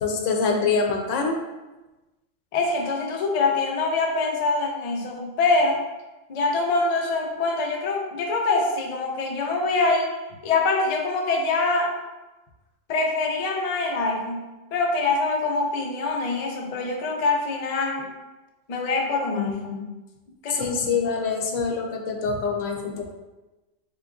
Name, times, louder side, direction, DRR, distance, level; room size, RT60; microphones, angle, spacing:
voice 1, 0.0-1.4 20.5-23.1, left 4 dB, 80° left, 3 dB, 0.9 m, -25 dB
voice 2, 2.5-5.8 6.3-10.1 10.4-11.9 12.9-14.4 14.7-18.1 18.7-19.9 20.4-20.7, left 3 dB, 55° left, 0 dB, 0.4 m, -24 dB
3.7 x 3.6 x 2.3 m, 1.1 s
omnidirectional pair, 1.3 m